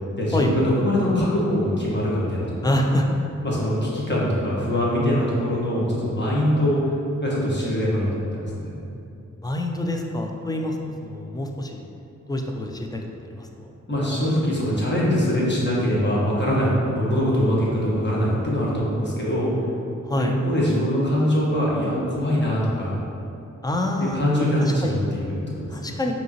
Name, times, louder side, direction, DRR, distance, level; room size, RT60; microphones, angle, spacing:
voice 1, 0.2-2.7 3.4-6.9 7.2-8.8 13.9-19.5 20.1-23.0 24.0-25.9, equal, 35° left, -6 dB, 1.3 m, -23 dB
voice 2, 2.6-3.3 9.4-10.8 11.0-11.8 12.3-13.7 20.1-20.4 23.6-24.2 24.6-25.0 25.7-26.1, left 1 dB, 15° left, 2 dB, 0.4 m, -26 dB
5.1 x 2.9 x 2.9 m, 2.7 s
cardioid pair, 50°, 31 cm